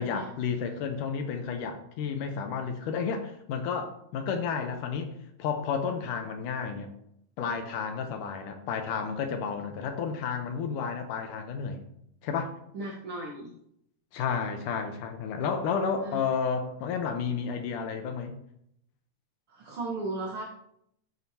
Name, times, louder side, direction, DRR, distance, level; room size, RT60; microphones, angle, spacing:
voice 1, 0.0-5.1 5.4-6.9 7.4-11.8 12.2-12.5 14.1-18.4, left 6 dB, 75° left, 5 dB, 2.2 m, -31 dB
voice 2, 12.7-13.5 16.0-16.2 19.5-20.4, right 2 dB, 90° right, -1 dB, 1.1 m, -36 dB
13.5 x 6.3 x 2.8 m, 0.74 s
omnidirectional pair, 4.1 m